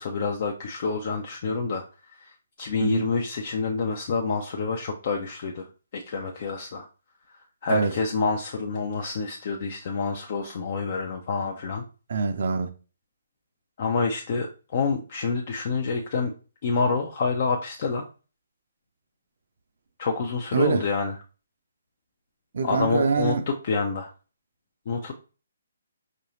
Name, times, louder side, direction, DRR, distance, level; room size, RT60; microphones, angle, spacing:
voice 1, 0.0-1.8 2.6-5.7 5.9-6.9 7.6-11.8 13.8-16.3 16.6-18.1 20.0-21.1 22.6-24.1 24.9-25.1, left 4 dB, 40° left, 0.4 m, -27 dB
voice 2, 2.8-3.1 7.7-7.9 12.1-12.7 20.5-20.9 22.5-23.4, right 5 dB, 50° right, 0.5 m, -24 dB
4.6 x 2.5 x 2.9 m
figure-of-eight pair, 135°, 0 cm